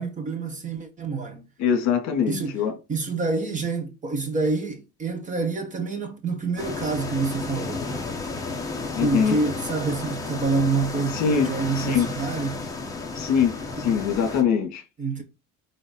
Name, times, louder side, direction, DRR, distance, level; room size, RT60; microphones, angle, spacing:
voice 1, 0.0-1.4 2.3-2.6 2.9-8.0 9.0-12.6 13.8-14.0 15.0-15.2, right 4 dB, 25° right, 1.4 m, -27 dB
voice 2, 1.6-2.7 8.9-9.4 11.1-11.5 11.7-12.1 13.1-14.8, left 7 dB, 55° left, 2.9 m, -23 dB
sound 1, 6.6-14.4, left 3 dB, 10° left, 1.5 m, -32 dB
9.0 x 3.3 x 4.0 m
cardioid pair, 170°, 33 cm